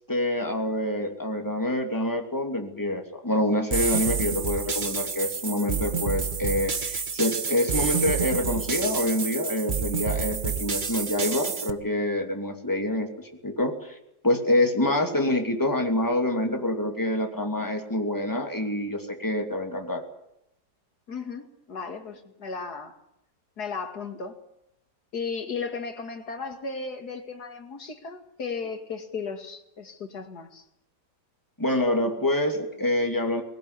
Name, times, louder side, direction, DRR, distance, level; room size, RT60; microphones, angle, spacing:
voice 1, 0.1-14.0 14.2-20.0 31.6-33.4, left 1 dB, 10° left, 4 dB, 2.8 m, -26 dB
sound 1, 3.7-11.7, right 5 dB, 35° right, 1.0 m, -29 dB
voice 2, 21.1-23.0 23.6-24.4 25.1-30.6, left 5 dB, 60° left, 6 dB, 2.8 m, -35 dB
20.5 x 18.0 x 9.8 m, 0.81 s
omnidirectional pair, 1.9 m